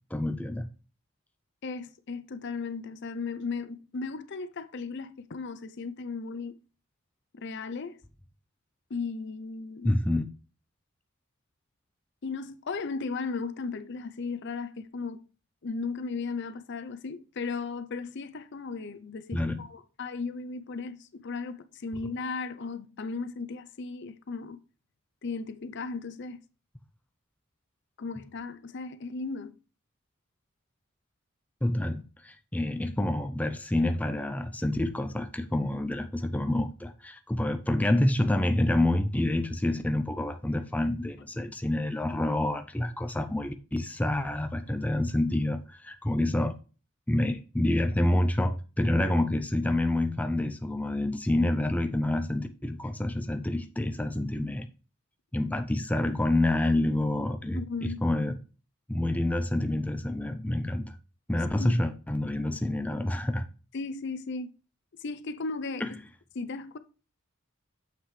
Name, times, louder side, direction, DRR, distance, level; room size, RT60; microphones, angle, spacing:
voice 1, 0.1-0.6 9.8-10.3 19.3-19.6 31.6-46.5 47.1-54.7 55.3-58.3 58.9-61.0 61.3-63.5 65.8-65.9, left 1 dB, 5° left, 0.5 m, -28 dB
voice 2, 1.6-6.6 7.4-8.0 8.9-9.9 12.2-15.2 15.6-24.6 25.2-26.4 28.0-29.6 57.5-58.0 61.6-61.8 63.7-64.5 65.0-65.9 66.3-66.8, left 4 dB, 55° left, 0.5 m, -36 dB
7.5 x 5.9 x 3.2 m
head